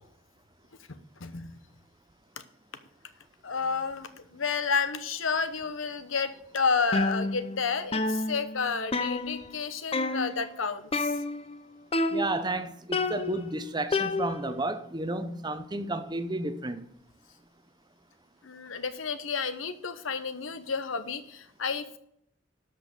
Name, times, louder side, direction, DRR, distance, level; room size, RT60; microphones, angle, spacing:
voice 1, 0.9-1.5 3.4-11.2 18.4-22.0, left 5 dB, 80° left, 1.0 m, -31 dB
sound 1, 6.9-7.6 7.9-9.6 9.9-10.5 10.9-11.6 11.9-12.6 12.9-14.6, left 2 dB, 30° left, 0.7 m, -30 dB
voice 2, 12.1-16.9, right 2 dB, 20° right, 0.7 m, -32 dB
12.5 x 5.6 x 6.7 m
head